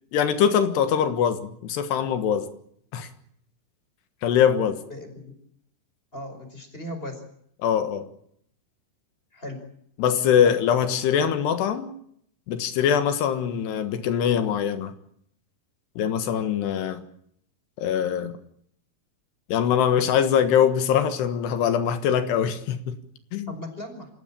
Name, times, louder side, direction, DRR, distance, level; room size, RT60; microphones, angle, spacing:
voice 1, 0.1-2.5 2.9-3.1 4.2-4.8 7.6-8.1 10.0-11.9 12.5-15.0 16.0-17.0 17.8-18.3 19.5-23.0 23.3-23.5, left 8 dB, 80° left, 9 dB, 3.6 m, -22 dB
voice 2, 4.9-5.3 6.1-7.2 9.3-9.6 10.4-10.6 23.5-24.1, left 1 dB, 15° left, 5 dB, 5.1 m, -37 dB
27.5 x 16.5 x 8.9 m, 0.69 s
omnidirectional pair, 4.8 m